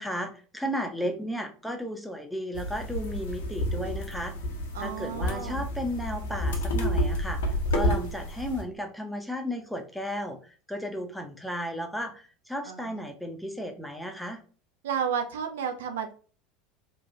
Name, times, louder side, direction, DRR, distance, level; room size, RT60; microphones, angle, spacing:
voice 1, 0.0-4.3 4.8-7.4 7.7-10.4 10.7-14.4, equal, ahead, 3 dB, 0.6 m, -34 dB
sound 1, 2.5-8.6, equal, 70° left, 0.6 m, -30 dB
voice 2, 4.7-5.6 12.6-13.0 14.8-16.1, right 7 dB, 65° right, 6 dB, 0.3 m, -32 dB
2.9 x 2.3 x 2.6 m, 0.40 s
figure-of-eight pair, 75°, 0 cm